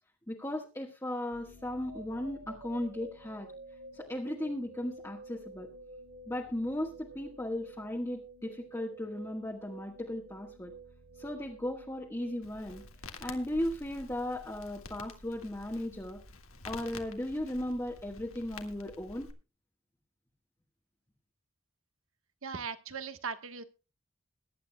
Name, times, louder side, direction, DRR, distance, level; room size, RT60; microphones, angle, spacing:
voice 1, 0.3-3.5 3.9-5.7 6.3-10.7 11.2-12.8 13.2-16.2 16.6-19.3, left 1 dB, 15° left, -1 dB, 1.4 m, -36 dB
sound 1, 1.3-13.4, right 2 dB, 50° right, 3.3 m, -51 dB
Crackle, 12.4-19.3, left 3 dB, 75° left, 1.8 m, -49 dB
voice 2, 22.4-23.6, right 5 dB, 70° right, 10 dB, 1.2 m, -38 dB
22.0 x 10.5 x 2.2 m, 0.31 s
head